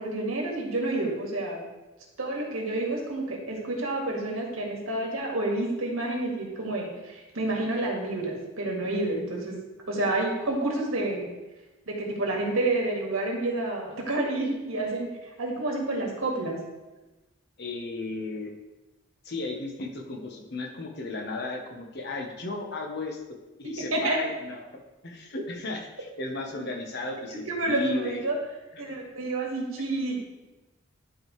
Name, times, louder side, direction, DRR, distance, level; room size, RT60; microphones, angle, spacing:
voice 1, 0.0-1.6 2.2-9.6 9.9-11.3 11.9-16.6 23.9-24.2 27.3-28.3 28.8-30.2, right 2 dB, 80° right, -1 dB, 1.8 m, -29 dB
voice 2, 17.6-18.5 19.2-24.6 25.0-28.2, left 3 dB, 55° left, 1 dB, 1.0 m, -35 dB
11.5 x 4.6 x 3.2 m, 1.1 s
head